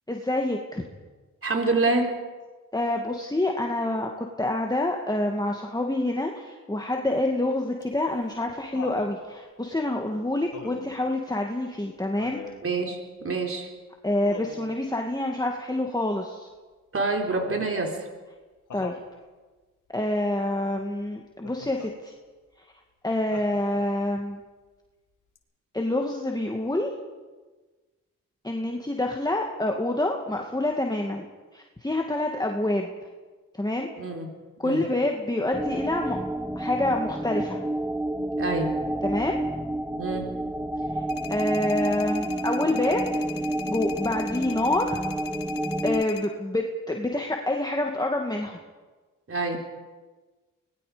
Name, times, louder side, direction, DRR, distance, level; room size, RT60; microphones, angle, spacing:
voice 1, 0.1-0.8 2.7-12.4 14.0-16.5 18.7-19.0 19.9-22.1 23.0-24.4 25.7-26.9 28.4-31.3 31.5-32.9 33.5-33.9 34.6-36.2 36.6-37.6 39.0-39.4 41.3-43.1 43.7-45.0 45.8-48.6, left 1 dB, 10° left, 2 dB, 2.3 m, -27 dB
voice 2, 1.4-2.1 12.6-13.7 16.9-18.1 34.0-34.3 34.6-34.9 38.4-38.7 40.0-40.3 49.3-49.6, right 3 dB, 40° right, 1 dB, 4.4 m, -26 dB
Laughter, 7.8-9.1 10.5-11.0 12.2-12.6 14.2-14.8 17.3-17.8 18.7-19.1 21.4-21.9 23.3-24.0 25.4-25.5, left 6 dB, 65° left, 2.3 m, -41 dB
sound 1, 35.5-46.0, right 1 dB, 5° right, 1.1 m, -29 dB
sound 2, 41.1-46.3, left 11 dB, 90° left, 1.7 m, -40 dB
24.5 x 20.5 x 5.3 m, 1.3 s
supercardioid pair, 50°, 33 cm